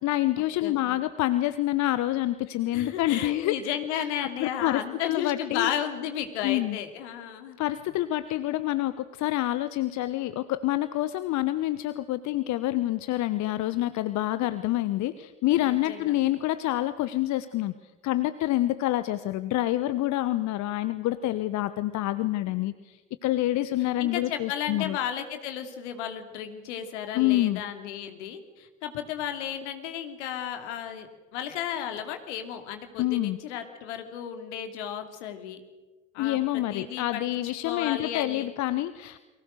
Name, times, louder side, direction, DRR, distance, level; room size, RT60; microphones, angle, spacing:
voice 1, 0.0-3.6 3.9-4.0 4.4-5.7 6.4-6.8 7.6-17.7 18.0-25.0 27.1-27.6 33.0-33.4 36.2-39.2, left 15 dB, 50° left, 14 dB, 1.1 m, -27 dB
voice 2, 0.6-1.0 2.7-7.6 15.6-16.1 23.8-31.1 31.3-35.6 36.1-38.5, left 9 dB, 65° left, 7 dB, 2.9 m, -34 dB
29.5 x 24.0 x 6.6 m, 1.2 s
figure-of-eight pair, 55°, 37 cm